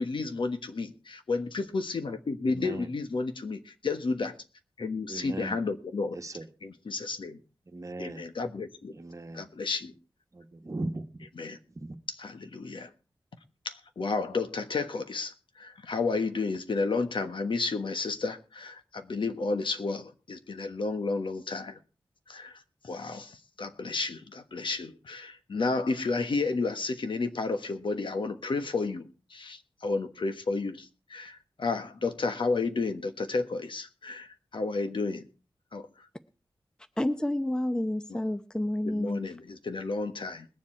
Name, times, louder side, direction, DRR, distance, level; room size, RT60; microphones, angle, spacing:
voice 1, 0.0-4.3 4.8-6.2 6.6-7.4 8.0-8.9 9.3-9.9 11.4-11.6 12.1-12.9 13.6-21.8 22.3-22.6 22.8-35.3 35.7-35.9 38.1-38.2 38.8-40.5, left 3 dB, 70° left, 1.3 m, -32 dB
voice 2, 2.4-2.9 5.1-5.6 6.1-6.5 7.7-8.2 8.9-9.5 10.3-11.1 11.8-11.9, right 2 dB, 40° right, 1.3 m, -38 dB
voice 3, 37.0-39.2, left 1 dB, 10° left, 0.7 m, -29 dB
21.5 x 7.4 x 4.4 m
wide cardioid pair, 100°, 9 cm